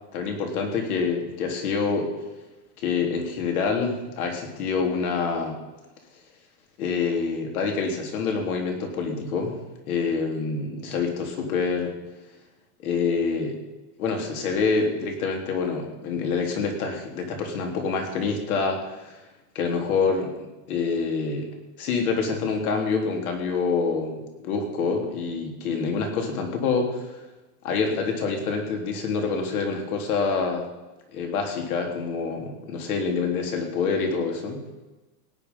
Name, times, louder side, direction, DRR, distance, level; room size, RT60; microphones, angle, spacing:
voice 1, 0.1-2.1 2.8-5.6 6.8-9.5 9.9-11.9 12.8-13.6 14.0-19.1 19.6-20.3 20.7-21.5 21.8-27.0 27.6-30.7 31.1-34.6, left 5 dB, 65° left, 3 dB, 3.5 m, -26 dB
17.5 x 9.5 x 5.5 m, 1.1 s
supercardioid pair, 175°, 46 cm